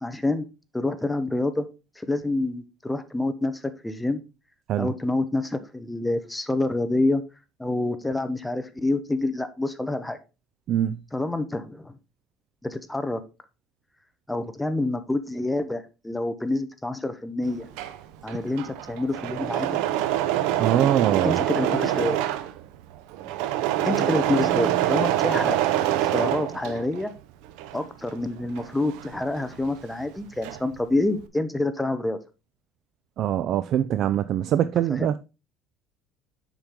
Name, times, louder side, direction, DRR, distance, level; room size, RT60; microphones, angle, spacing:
voice 1, 0.0-0.4 0.7-1.7 2.0-3.5 3.8-4.2 4.8-7.2 7.6-10.2 11.1-12.0 12.6-13.2 14.3-17.7 18.2-19.8 21.2-22.2 23.8-25.6 26.1-27.1 27.7-32.2 34.9-35.1, left 2 dB, 5° left, 0.8 m, -27 dB
voice 2, 10.7-11.0 20.6-21.4 33.2-35.2, right 10 dB, 50° right, 0.4 m, -23 dB
Engine / Mechanisms, 17.5-27.1 27.5-29.8 30.1-30.8, right 13 dB, 85° right, 0.6 m, -26 dB
7.2 x 5.2 x 3.7 m
cardioid pair, 130°, 0 cm